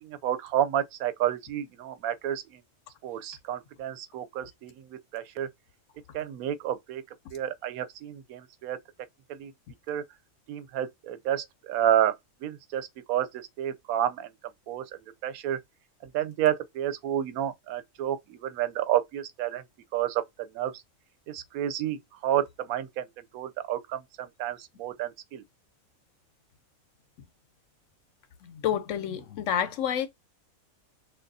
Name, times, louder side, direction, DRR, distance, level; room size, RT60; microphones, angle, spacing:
voice 1, 0.0-2.4 3.0-5.5 6.1-7.0 7.3-8.8 9.3-9.5 9.9-10.0 10.5-12.1 12.4-14.3 14.7-14.8 15.2-15.6 16.1-19.6 19.9-20.2 20.5-20.7 21.3-23.1 23.3-25.4, right 11 dB, 85° right, 1.0 m, -30 dB
voice 2, 28.4-30.1, left 9 dB, 70° left, 0.9 m, -29 dB
6.1 x 2.4 x 2.6 m
omnidirectional pair, 1.5 m